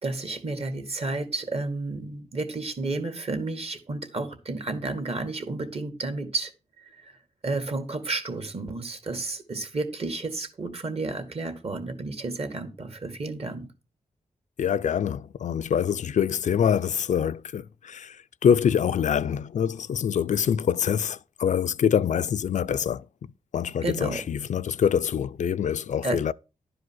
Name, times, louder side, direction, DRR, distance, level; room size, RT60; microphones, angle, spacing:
voice 1, 0.0-6.5 6.8-7.1 7.4-13.7 23.8-24.2 26.0-26.2, right 3 dB, 50° right, 1.9 m, -31 dB
voice 2, 14.6-23.1 23.5-26.3, left 8 dB, 65° left, 0.4 m, -25 dB
11.5 x 4.9 x 6.2 m
cardioid pair, 80°, 13 cm